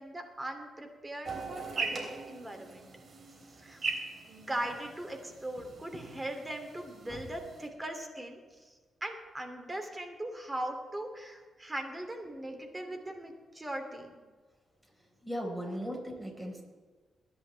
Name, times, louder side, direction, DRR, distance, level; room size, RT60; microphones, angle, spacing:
voice 1, 0.0-2.9 3.6-3.9 4.3-8.4 8.6-8.7 9.0-14.2, right 1 dB, 20° right, 4 dB, 2.9 m, -40 dB
sound 1, 1.2-7.7, right 4 dB, 55° right, 3.2 m, -40 dB
voice 2, 15.2-16.6, equal, 5° right, -1 dB, 4.9 m, -37 dB
22.0 x 10.5 x 3.5 m, 1.4 s
cardioid pair, 60°, 0 cm